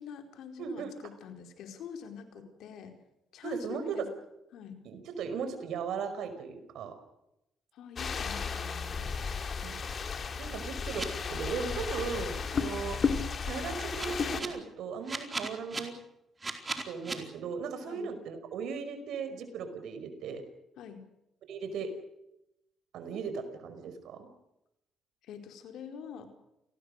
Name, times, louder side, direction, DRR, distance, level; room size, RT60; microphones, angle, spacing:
voice 1, 0.0-2.9 3.3-4.1 4.5-4.8 7.7-9.1 17.9-18.1 20.8-21.1 25.2-26.3, left 7 dB, 80° left, 5 dB, 4.6 m, -45 dB
voice 2, 0.6-0.9 3.4-4.1 4.9-7.0 8.9-9.0 9.6-9.8 10.4-13.0 13.4-15.9 16.8-20.4 21.5-21.9 22.9-24.3, right 5 dB, 80° right, 9 dB, 5.3 m, -37 dB
sound 1, 8.0-14.4, left 5 dB, 45° left, 3.4 m, -34 dB
sound 2, 10.9-11.0 13.8-14.5 15.1-15.8 16.4-17.1, right 3 dB, 25° right, 4.3 m, -35 dB
29.0 x 20.0 x 6.7 m, 0.86 s
cardioid pair, 90°, 0 cm